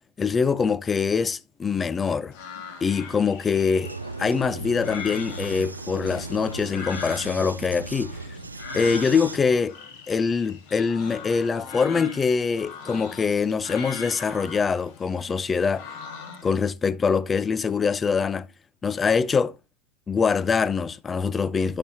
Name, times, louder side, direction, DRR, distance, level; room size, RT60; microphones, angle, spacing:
voice 1, 0.2-2.3 2.8-8.4 8.7-9.8 10.1-15.9 16.4-18.5 18.8-19.6 20.1-21.8, left 5 dB, 15° left, 0.4 m, -24 dB
sound 1, 2.3-16.6, left 5 dB, 50° left, 1.8 m, -40 dB
Vehicle, 3.8-9.4, right 3 dB, 80° right, 0.4 m, -37 dB
10.0 x 6.9 x 2.8 m
figure-of-eight pair, 90°, 0 cm